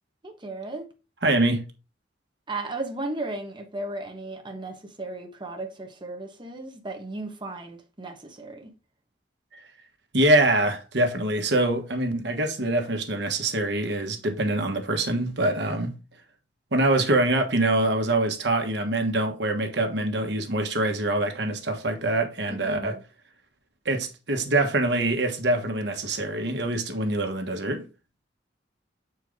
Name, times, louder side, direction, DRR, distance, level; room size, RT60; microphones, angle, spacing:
voice 1, 0.2-0.9 2.5-8.7 22.5-23.0, right 2 dB, 25° right, 1.2 m, -35 dB
voice 2, 1.2-1.7 9.5-9.6 10.1-16.0 16.7-23.0 23.8-27.9, right 1 dB, 75° right, 1.4 m, -24 dB
6.6 x 4.6 x 3.6 m
head